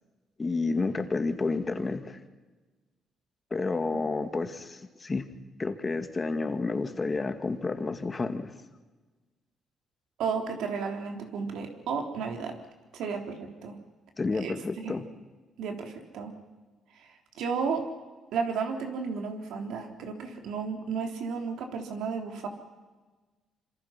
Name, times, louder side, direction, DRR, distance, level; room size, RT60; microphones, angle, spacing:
voice 1, 0.4-2.2 3.5-5.3 5.6-8.5 14.2-15.0, left 3 dB, 30° left, 8 dB, 2.1 m, -30 dB
voice 2, 10.2-12.6 12.9-13.8 14.4-14.9 15.6-16.4 16.9-17.9 18.3-22.5, right 5 dB, 80° right, 4 dB, 3.6 m, -33 dB
26.5 x 25.5 x 6.0 m, 1.3 s
cardioid pair, 90°, 0 cm